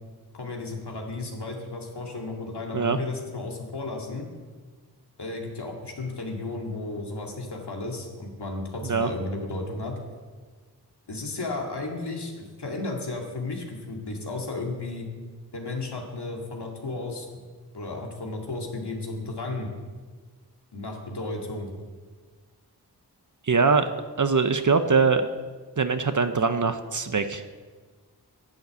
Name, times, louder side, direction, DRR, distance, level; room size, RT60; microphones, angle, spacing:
voice 1, 0.3-4.2 5.2-10.0 11.1-15.1 15.5-17.3 17.7-19.7 20.7-21.7, left 2 dB, 75° left, 1 dB, 2.2 m, -33 dB
voice 2, 23.5-23.9 24.2-25.3 25.8-27.6, right 4 dB, 50° right, 9 dB, 0.8 m, -22 dB
10.5 x 7.8 x 8.1 m, 1.4 s
wide cardioid pair, 60°, 41 cm